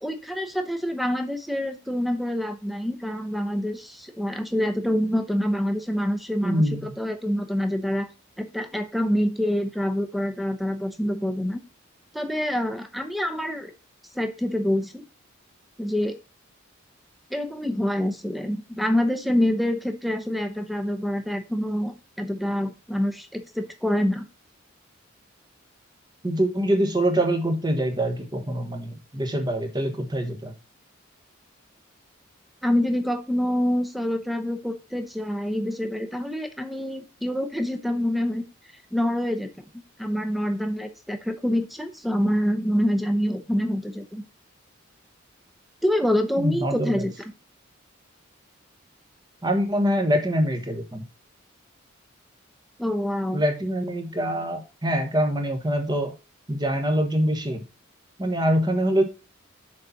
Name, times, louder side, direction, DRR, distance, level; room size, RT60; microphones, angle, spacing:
voice 1, 0.0-8.1 8.4-11.6 12.1-13.7 14.1-15.0 15.8-16.2 17.3-24.3 32.6-38.4 38.9-39.5 40.0-44.2 45.8-47.1 52.8-53.4, equal, ahead, 7 dB, 0.7 m, -26 dB
voice 2, 6.4-6.9 26.2-30.5 46.4-47.0 49.4-51.1 53.3-56.1 56.5-57.6 58.2-59.0, equal, 20° right, 5 dB, 1.1 m, -24 dB
6.6 x 4.1 x 5.7 m, 0.29 s
head